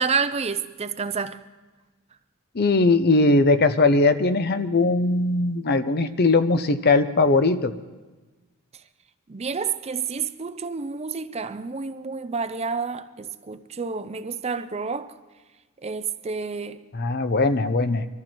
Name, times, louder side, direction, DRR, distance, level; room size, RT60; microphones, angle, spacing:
voice 1, 0.0-1.4 9.3-15.1 15.8-16.8, right 5 dB, 30° right, 0.5 m, -29 dB
voice 2, 2.5-7.7 16.9-18.1, left 3 dB, 45° left, 0.7 m, -20 dB
23.5 x 14.0 x 4.5 m
head